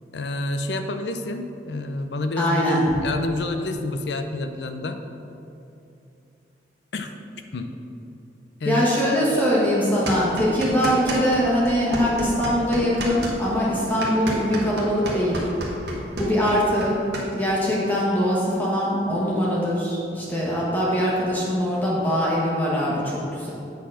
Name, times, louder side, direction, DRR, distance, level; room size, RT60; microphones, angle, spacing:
voice 1, 0.1-5.0 6.9-7.1 7.5-7.7 8.6-8.9, left 2 dB, 75° left, 7 dB, 0.5 m, -28 dB
voice 2, 2.4-2.8 8.6-15.4 16.2-17.0 17.3-23.5, equal, 10° left, -6 dB, 1.3 m, -22 dB
sound 1, 10.1-11.4 11.7-17.3, right 1 dB, 70° right, 1.4 m, -30 dB
8.3 x 4.1 x 6.2 m, 2.7 s
head